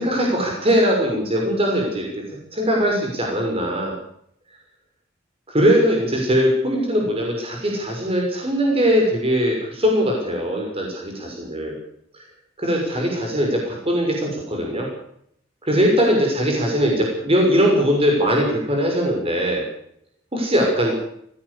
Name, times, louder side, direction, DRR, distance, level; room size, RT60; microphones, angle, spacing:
voice 1, 0.0-2.1 2.5-3.9 5.5-11.8 12.6-14.9 15.7-19.6 20.3-21.0, equal, 30° right, 0 dB, 6.3 m, -20 dB
21.5 x 16.0 x 8.5 m, 0.70 s
head